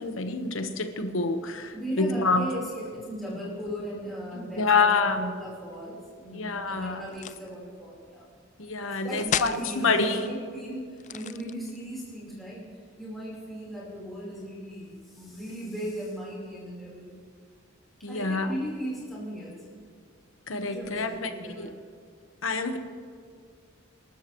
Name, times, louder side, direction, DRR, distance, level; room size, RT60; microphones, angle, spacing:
voice 1, 0.0-2.4 4.5-5.3 6.3-7.0 8.6-10.2 18.0-18.5 20.5-21.3 21.6-21.7 22.4-22.8, left 4 dB, 70° left, 7 dB, 1.2 m, -27 dB
voice 2, 1.7-8.2 9.0-17.2 18.1-19.6 20.6-21.7, equal, ahead, -7 dB, 4.1 m, -37 dB
sound 1, 7.1-7.5 9.2-9.7 10.9-11.9, left 9 dB, 35° left, 0.3 m, -32 dB
27.0 x 13.0 x 3.1 m, 2.1 s
head